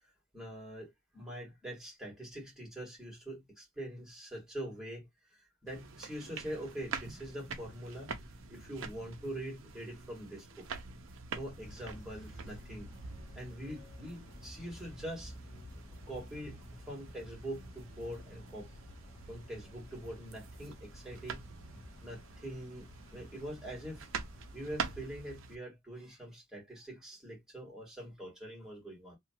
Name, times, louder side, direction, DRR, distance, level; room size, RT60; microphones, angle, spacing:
voice 1, 0.3-8.2 8.5-10.7 11.3-12.9 13.3-15.3 16.1-16.6 16.9-18.7 19.3-21.5 22.0-24.1 24.5-29.2, right 1 dB, ahead, 1.5 m, -44 dB
sound 1, 5.7-25.6, right 5 dB, 70° right, 0.5 m, -46 dB
sound 2, 5.8-18.7, equal, 30° right, 0.9 m, -58 dB
sound 3, 11.6-25.1, left 1 dB, 35° left, 0.5 m, -53 dB
2.7 x 2.3 x 2.7 m
head